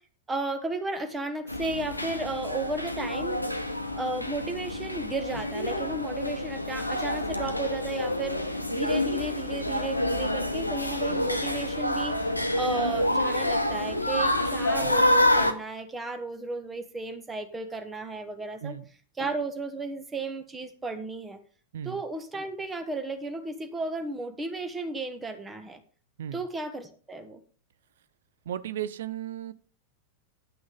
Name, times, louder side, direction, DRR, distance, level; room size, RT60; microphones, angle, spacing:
voice 1, 0.3-3.4 3.9-12.2 12.6-18.7 19.2-21.4 21.8-25.8 26.3-27.4, right 3 dB, 15° right, 1.4 m, -34 dB
sound 1, 1.5-15.5, left 1 dB, 85° left, 0.9 m, -28 dB
voice 2, 28.5-29.5, right 10 dB, 60° right, 0.6 m, -35 dB
10.0 x 6.0 x 5.3 m
figure-of-eight pair, 90°, 0 cm